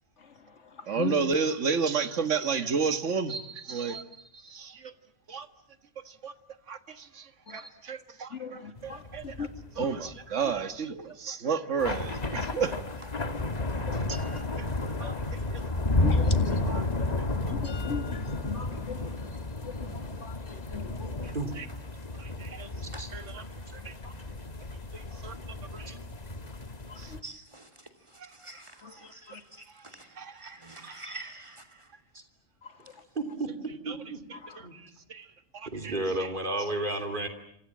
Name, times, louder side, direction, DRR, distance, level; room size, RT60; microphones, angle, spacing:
voice 1, 0.9-4.9 5.3-5.5 6.1-6.3 6.7-9.5 9.8-12.8 13.9-14.7 15.0-15.6 16.7-16.8 17.2-17.6 21.2-21.7 22.2-22.7 23.1-23.4 23.9-24.0 24.9-26.0 27.0-27.1 28.2-28.3 30.2-30.4 30.7-31.2 33.9-34.0 34.6-35.3 35.5-35.9 36.2-36.3, right 5 dB, 75° right, 1.8 m, -33 dB
voice 2, 8.3-9.5 9.8-9.9 13.7-14.2 15.0-15.2 16.0-16.6 17.5-19.0 19.6-21.1 26.9-27.0 28.8-28.9 29.3-29.4 34.4-34.6, left 5 dB, 65° left, 2.4 m, -38 dB
sound 1, 8.8-10.5 11.8-27.2, left 2 dB, 35° left, 1.5 m, -32 dB
voice 3, 23.7-24.1 30.8-30.9 32.1-32.2 33.2-34.2 34.6-34.7 35.7-37.3, right 2 dB, 40° right, 3.4 m, -33 dB
voice 4, 27.2-27.7 28.4-30.1 30.4-31.6, right 3 dB, 25° right, 2.9 m, -46 dB
28.0 x 26.5 x 7.4 m
omnidirectional pair, 1.3 m